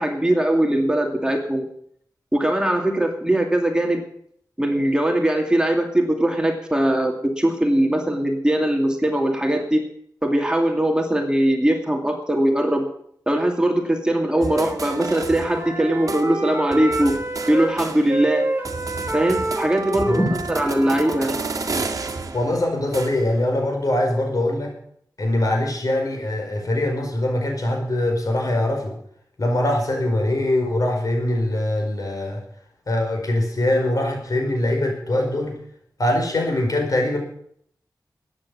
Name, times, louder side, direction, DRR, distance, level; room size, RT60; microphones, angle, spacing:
voice 1, 0.0-1.7 2.3-4.0 4.6-9.8 10.2-12.9 13.3-17.2 17.5-18.5 19.1-21.4, right 1 dB, 10° right, 3 dB, 2.4 m, -21 dB
Wind instrument woodwind instrument, 14.3-17.8 18.1-22.3, right 2 dB, 30° right, 3.3 m, -29 dB
sound 1, 14.4-15.8 16.1-16.2 16.7-18.4 18.6-23.4, right 3 dB, 55° right, 1.8 m, -32 dB
voice 2, 22.3-24.7 25.2-28.9 29.4-32.4 32.9-35.5 36.0-37.2, left 1 dB, 60° left, 2 dB, 5.0 m, -22 dB
14.0 x 9.7 x 8.5 m, 0.67 s
wide cardioid pair, 75°, 7 cm